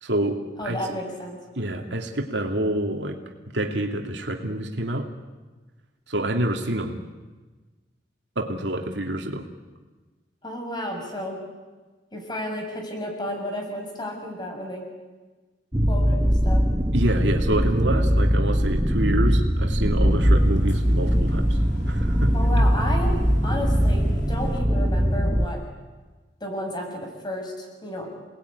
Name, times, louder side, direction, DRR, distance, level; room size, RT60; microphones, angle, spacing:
voice 1, 0.0-0.8 1.6-3.2 3.5-5.1 6.1-7.0 8.4-9.5 16.9-22.6, right 1 dB, 70° right, 3 dB, 2.7 m, -27 dB
voice 2, 0.6-1.4 10.4-11.4 12.1-14.8 15.9-16.6 22.3-23.2 23.4-25.6 26.4-28.1, left 1 dB, 25° left, 2 dB, 6.9 m, -32 dB
sound 1, 15.7-25.5, equal, 15° right, 1.0 m, -21 dB
sound 2, 19.6-24.6, left 1 dB, 80° left, 3.1 m, -44 dB
29.5 x 20.0 x 9.8 m, 1.3 s
head